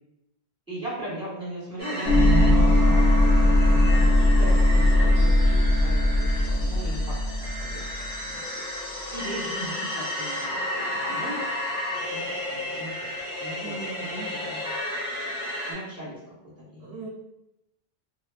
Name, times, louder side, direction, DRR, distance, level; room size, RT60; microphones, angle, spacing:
voice 1, 0.7-3.0 3.3-7.2 7.6-10.5 10.9-11.4 12.1-12.2 12.5-13.1 13.4-14.7 15.7-16.2 16.6-17.0, right 1 dB, 5° right, -9 dB, 1.2 m, -38 dB
sound 1, 1.8-15.7, left 1 dB, 60° left, 1.2 m, -33 dB
sound 2, 2.1-8.1, left 1 dB, 80° left, 0.8 m, -19 dB
sound 3, 2.7-4.1 5.1-6.4 7.4-8.8 10.2-10.5 11.5-11.8 12.8-13.2, right 1 dB, 40° right, 0.7 m, -39 dB
voice 2, 13.6-14.4 16.8-17.1, right 4 dB, 70° right, -4 dB, 0.9 m, -39 dB
2.9 x 2.3 x 2.3 m, 0.87 s
omnidirectional pair, 1.1 m